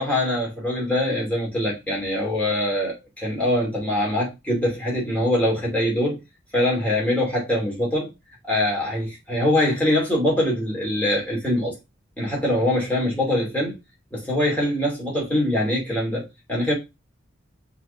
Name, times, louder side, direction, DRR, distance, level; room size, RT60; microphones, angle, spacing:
voice 1, 0.0-6.2 6.5-8.1 8.4-11.8 12.2-13.8 14.1-16.7, left 1 dB, 10° left, 2.8 m, -23 dB
5.9 x 3.6 x 5.2 m
head